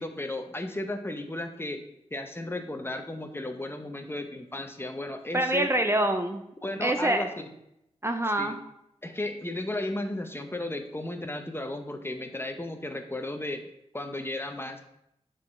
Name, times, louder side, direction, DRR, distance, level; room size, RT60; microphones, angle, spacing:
voice 1, 0.0-1.8 2.1-5.7 6.6-7.5 8.4-8.6 9.0-13.7 13.9-14.8, left 1 dB, 20° left, 5 dB, 0.8 m, -34 dB
voice 2, 5.3-6.4 6.8-7.2 8.0-8.6, right 1 dB, 20° right, 5 dB, 0.5 m, -25 dB
5.9 x 4.0 x 4.4 m, 0.80 s
cardioid pair, 55°, 12 cm